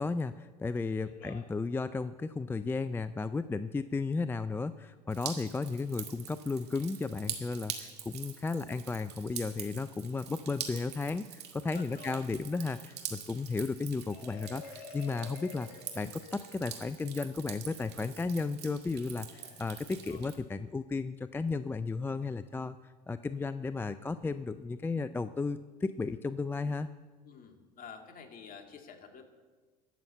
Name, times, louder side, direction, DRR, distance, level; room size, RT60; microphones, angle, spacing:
voice 1, 0.0-15.7 16.0-22.8 23.1-26.9, left 4 dB, 10° left, 13 dB, 0.4 m, -34 dB
voice 2, 1.0-1.5 11.7-12.3 19.3-19.6 20.0-20.2 27.2-29.2, left 6 dB, 45° left, 4 dB, 2.1 m, -50 dB
Drip, 5.1-20.3, right 9 dB, 55° right, 2.0 m, -45 dB
Marimba xylophone, 14.1-16.9, left 5 dB, 80° left, 1.2 m, -49 dB
13.5 x 7.1 x 8.2 m, 1.4 s
hypercardioid pair, 80°, 20 cm